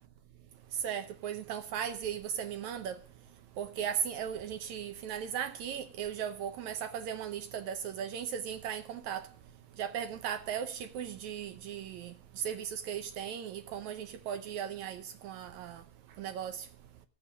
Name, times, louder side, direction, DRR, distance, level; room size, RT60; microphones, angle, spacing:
voice 1, 0.8-3.0 3.6-9.3 9.8-15.8 16.2-16.6, right 8 dB, 75° right, 1.9 m, -37 dB
14.5 x 8.4 x 6.2 m
omnidirectional pair, 3.9 m